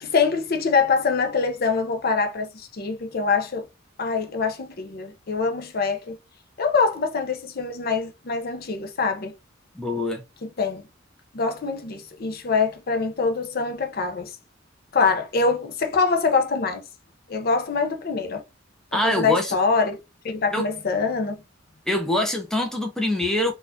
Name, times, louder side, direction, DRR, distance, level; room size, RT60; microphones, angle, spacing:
voice 1, 0.0-3.7 4.0-6.2 6.6-9.3 10.4-10.8 11.3-14.4 14.9-16.8 17.3-18.4 19.0-20.0 20.2-21.4, left 4 dB, 50° left, 0.6 m, -24 dB
voice 2, 9.8-10.2 18.9-19.6 20.5-20.7 21.9-23.5, left 1 dB, 5° left, 0.6 m, -24 dB
4.1 x 2.4 x 2.6 m
head